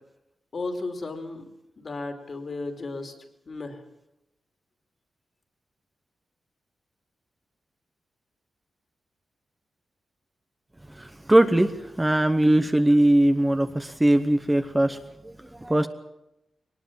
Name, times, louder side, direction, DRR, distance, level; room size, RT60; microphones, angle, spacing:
voice 1, 0.5-3.1 3.5-3.8, left 3 dB, 45° left, 5 dB, 2.8 m, -34 dB
voice 2, 10.9-15.9, right 1 dB, 10° right, 8 dB, 0.9 m, -21 dB
22.0 x 19.5 x 7.4 m, 0.86 s
wide cardioid pair, 130°, 0 cm